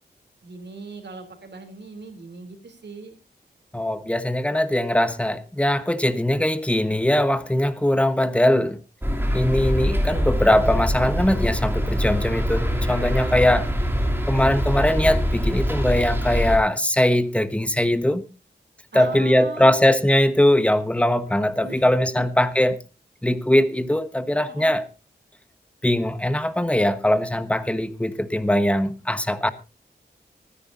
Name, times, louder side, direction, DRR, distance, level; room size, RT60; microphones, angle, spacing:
voice 1, 0.4-3.2 13.2-13.5 18.9-20.0 21.6-21.8 22.2-22.3 24.4-24.8, right 3 dB, 75° right, 3.2 m, -39 dB
voice 2, 3.7-8.8 9.3-13.7 14.3-18.2 18.9-22.8 23.2-24.9 25.8-29.5, left 1 dB, 5° left, 1.2 m, -21 dB
sound 1, 9.0-16.6, equal, 10° right, 2.9 m, -24 dB
24.5 x 9.8 x 2.7 m
wide cardioid pair, 100°, 18 cm